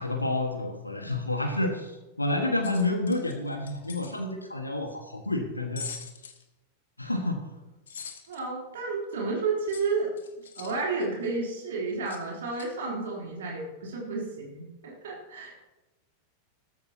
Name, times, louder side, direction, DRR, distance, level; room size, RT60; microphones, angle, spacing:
voice 1, 0.0-5.9 7.0-7.4, left 2 dB, 85° left, 3 dB, 1.6 m, -29 dB
sound 1, 2.6-4.1 5.8-6.4 7.9-8.4 9.7-10.8 12.1-12.2 12.5-12.7, left 6 dB, 65° left, 1.6 m, -42 dB
voice 2, 8.3-10.1 10.5-15.6, right 4 dB, 60° right, -2 dB, 3.4 m, -31 dB
17.5 x 14.0 x 2.9 m, 1.1 s
figure-of-eight pair, 90°, 0 cm